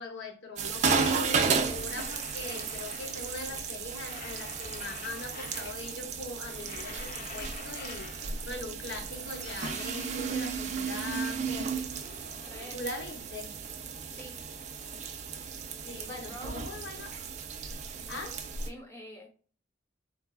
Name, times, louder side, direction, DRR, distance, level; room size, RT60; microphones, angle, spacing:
voice 1, 0.0-8.1 8.5-11.7 12.7-13.6 15.9-17.2 18.1-18.4, left 2 dB, 75° left, 0.7 m, -41 dB
sound 1, 0.6-18.7, right 5 dB, 40° right, 0.3 m, -34 dB
sound 2, 1.5-3.6 3.9-6.1 6.4-8.6 8.9-11.0 11.4-13.4 13.7-15.9, left 6 dB, 45° left, 0.3 m, -49 dB
sound 3, 2.2-6.8, left 2 dB, 90° left, 1.1 m, -56 dB
voice 2, 12.5-12.8 14.1-14.4 15.9-16.7 18.6-19.3, equal, 15° left, 0.7 m, -46 dB
4.0 x 2.3 x 2.2 m
head